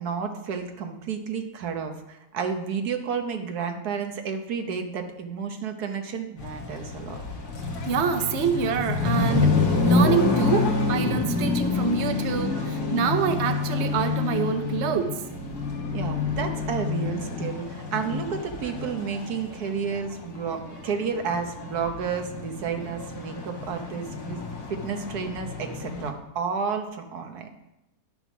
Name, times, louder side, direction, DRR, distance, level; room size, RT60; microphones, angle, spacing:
voice 1, 0.0-7.2 12.5-12.6 15.9-27.5, right 6 dB, 90° right, 5 dB, 1.6 m, -31 dB
sound 1, 6.4-26.1, left 4 dB, 85° left, 2.0 m, -28 dB
voice 2, 7.9-9.5 9.8-15.1, right 6 dB, 55° right, 7 dB, 1.0 m, -26 dB
11.0 x 5.8 x 6.0 m, 0.94 s
omnidirectional pair, 1.6 m